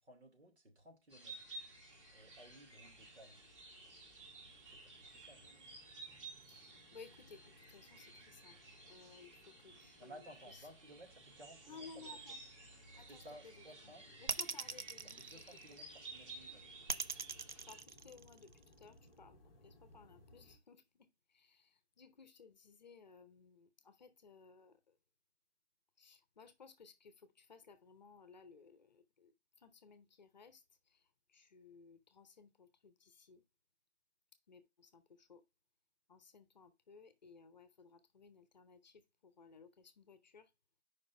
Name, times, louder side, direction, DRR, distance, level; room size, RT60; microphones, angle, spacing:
voice 1, 0.0-1.4 2.1-3.5 4.7-5.8 10.0-12.2 12.9-14.4 15.2-16.7, right 1 dB, 75° right, 3.0 m, -58 dB
sound 1, 1.1-17.8, right 3 dB, 25° right, 1.8 m, -55 dB
sound 2, 1.4-20.6, left 1 dB, 10° left, 0.9 m, -65 dB
voice 2, 6.5-8.6 8.9-10.2 10.5-10.6 11.6-12.4 13.0-13.5 14.2-15.3 15.7-15.8 17.1-17.2 17.7-25.0 26.0-33.4 34.5-35.4 36.1-40.5, left 5 dB, 40° left, 0.7 m, -59 dB
sound 3, 14.3-16.0 16.9-18.6, right 6 dB, 45° right, 0.4 m, -40 dB
5.1 x 3.9 x 5.8 m
figure-of-eight pair, 150°, 33 cm